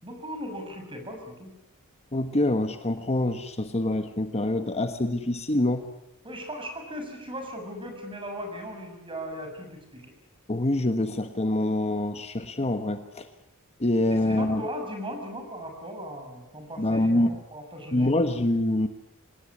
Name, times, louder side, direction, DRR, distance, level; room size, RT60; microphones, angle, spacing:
voice 1, 0.0-1.5 6.2-10.1 13.8-18.1, equal, 25° right, 4 dB, 7.0 m, -38 dB
voice 2, 2.1-5.9 10.5-13.3 13.8-14.6 16.8-17.4 17.9-18.9, left 1 dB, 30° left, 8 dB, 1.3 m, -25 dB
26.0 x 18.5 x 9.8 m, 0.86 s
head